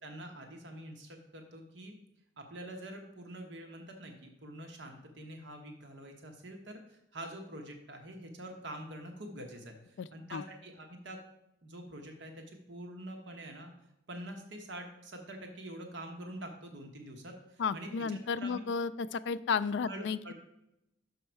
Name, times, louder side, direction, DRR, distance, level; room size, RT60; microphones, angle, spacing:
voice 1, 0.0-1.9 2.4-11.2 11.6-13.7 14.1-18.6 19.8-20.3, right 1 dB, 65° right, 3 dB, 1.0 m, -46 dB
voice 2, 10.0-10.4 17.6-20.3, left 5 dB, 60° left, 14 dB, 0.3 m, -33 dB
6.2 x 5.5 x 4.5 m, 0.84 s
head